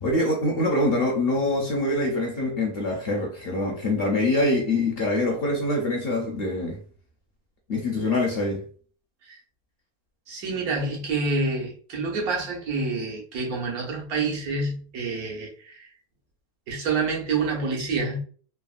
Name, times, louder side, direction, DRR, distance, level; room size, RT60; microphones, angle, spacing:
voice 1, 0.0-6.8 7.7-8.6, left 2 dB, 55° left, 0.7 m, -24 dB
voice 2, 10.3-15.9 16.7-18.2, right 3 dB, 80° right, 1.4 m, -28 dB
3.3 x 2.0 x 2.4 m
omnidirectional pair, 1.5 m